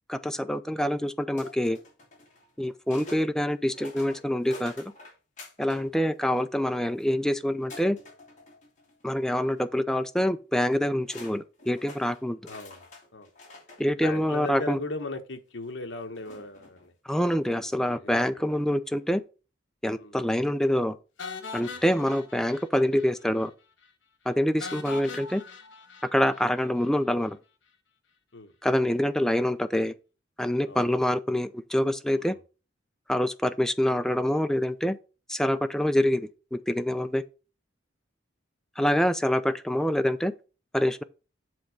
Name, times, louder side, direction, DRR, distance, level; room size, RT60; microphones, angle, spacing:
voice 1, 0.1-1.8 2.6-4.8 5.6-8.0 9.0-12.4 13.8-14.8 17.1-19.2 19.8-21.0 21.5-23.5 24.3-25.4 26.1-27.4 28.6-29.9 30.4-32.3 33.1-35.0 35.3-37.2 38.8-40.3 40.7-41.0, equal, 5° left, 0.4 m, -26 dB
sound 1, 1.4-3.3 3.7-5.9 6.2-7.1 7.7-9.1 9.5-9.7 10.7-10.8 11.1-13.8 14.7-14.8 16.1-16.9, left 2 dB, 40° left, 2.5 m, -48 dB
voice 2, 12.5-13.3 13.9-18.7 20.0-20.2 21.6-21.8 28.3-28.5 30.6-30.9 32.2-32.4, left 2 dB, 70° left, 1.1 m, -39 dB
sound 2, 21.2-23.1 23.4-23.5 23.8-23.9 24.6-26.9, left 5 dB, 90° left, 1.2 m, -41 dB
7.7 x 3.5 x 6.4 m
head